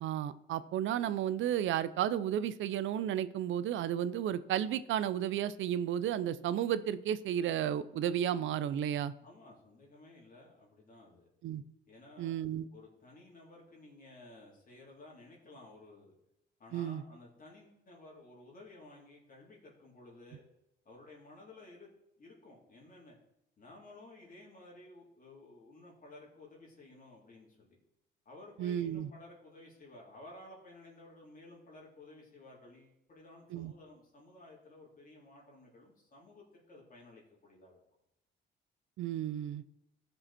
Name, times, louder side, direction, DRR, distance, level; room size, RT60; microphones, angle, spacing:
voice 1, 0.0-9.1 11.4-11.6 12.2-12.7 16.7-17.0 28.6-29.1 33.5-33.7 39.0-39.6, right 10 dB, 75° right, 16 dB, 0.6 m, -33 dB
voice 2, 9.2-11.3 11.9-12.3 12.7-16.1 16.6-20.4 20.8-21.9 22.2-23.2 23.6-27.8 28.2-37.8, left 2 dB, 45° left, -3 dB, 3.4 m, -55 dB
15.0 x 5.4 x 4.3 m, 0.84 s
cardioid pair, 90°, 20 cm